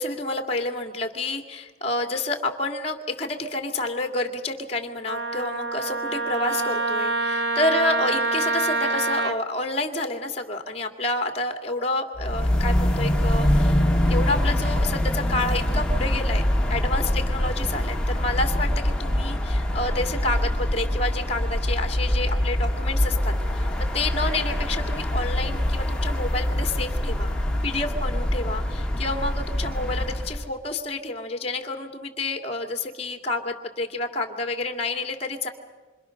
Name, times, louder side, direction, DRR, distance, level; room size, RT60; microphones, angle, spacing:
voice 1, 0.0-16.4 16.7-23.7 23.9-27.3 27.6-35.5, left 2 dB, 35° left, 4 dB, 2.4 m, -29 dB
Wind instrument woodwind instrument, 5.1-9.4, right 3 dB, 60° right, 1.0 m, -26 dB
sound 1, 12.2-30.5, left 1 dB, 5° left, 1.9 m, -24 dB
26.5 x 26.5 x 6.5 m, 1.3 s
head